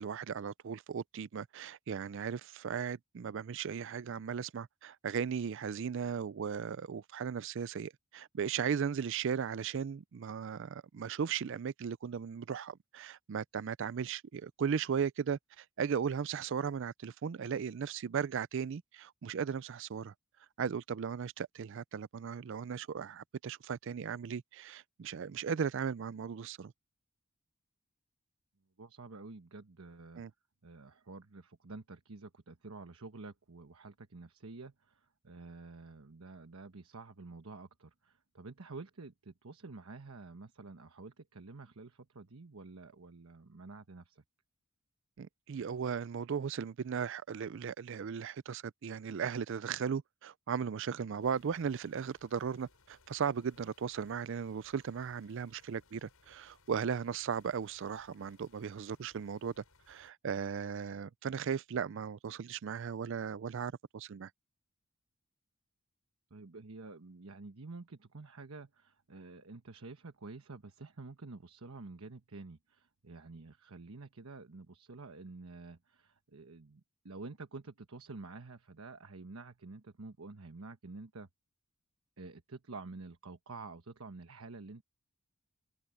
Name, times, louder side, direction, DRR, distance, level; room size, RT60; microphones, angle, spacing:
voice 1, 0.0-20.1 20.6-26.7 30.2-30.3 45.2-64.3, right 7 dB, 60° right, 0.4 m, -37 dB
voice 2, 28.8-30.2 30.6-44.2 66.3-81.3 82.2-84.8, right 3 dB, 80° right, 1.1 m, -49 dB
sound 1, 51.2-60.1, left 3 dB, 90° left, 7.3 m, -66 dB
head